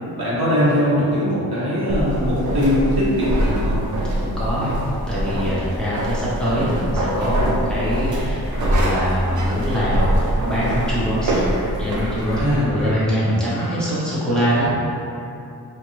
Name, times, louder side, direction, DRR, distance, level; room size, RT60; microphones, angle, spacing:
voice 1, 0.2-3.8 12.4-12.8 14.6-14.7, equal, 70° right, -9 dB, 1.3 m, -20 dB
sound 1, 1.9-12.6, right 1 dB, 50° right, 0.6 m, -24 dB
voice 2, 4.2-4.7 5.1-10.1 10.4-11.4 11.8-14.7, equal, ahead, -10 dB, 1.0 m, -23 dB
sound 2, 8.3-13.9, left 1 dB, 55° left, 1.1 m, -39 dB
4.5 x 2.5 x 3.2 m, 2.8 s
wide cardioid pair, 115°, 39 cm